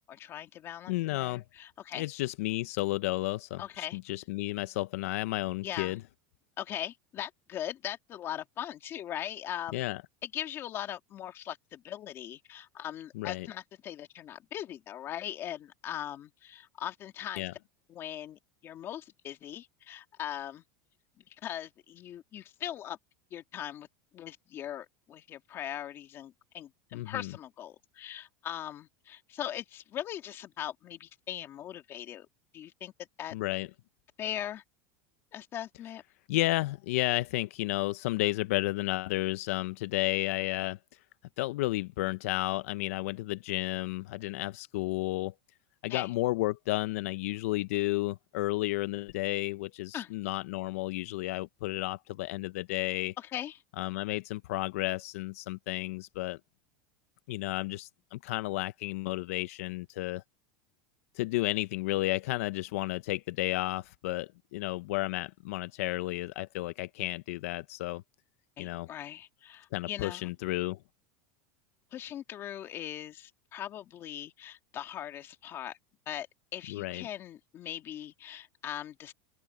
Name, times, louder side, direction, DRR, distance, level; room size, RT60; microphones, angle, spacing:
voice 1, 0.1-2.1 3.6-4.0 5.6-6.0 6.6-9.8 10.2-17.5 17.9-20.6 21.2-23.0 23.3-23.9 24.1-32.3 32.5-32.9 33.2-33.3 34.2-34.6 35.3-36.0 45.9-46.1 49.9-50.1 53.2-53.6 68.6-70.3 71.9-75.8 76.1-76.3 76.5-79.1, left 11 dB, 30° left, 2.3 m, -40 dB
voice 2, 0.9-1.4 2.0-6.0 9.7-10.0 13.2-13.5 17.4-17.5 26.9-27.3 33.3-33.7 36.3-40.8 41.4-45.3 45.8-53.1 53.8-56.4 57.3-60.2 61.2-68.0 68.6-68.9 69.7-70.8 76.7-77.1, left 18 dB, 80° left, 0.5 m, -32 dB
open air
supercardioid pair, 155°, 8 cm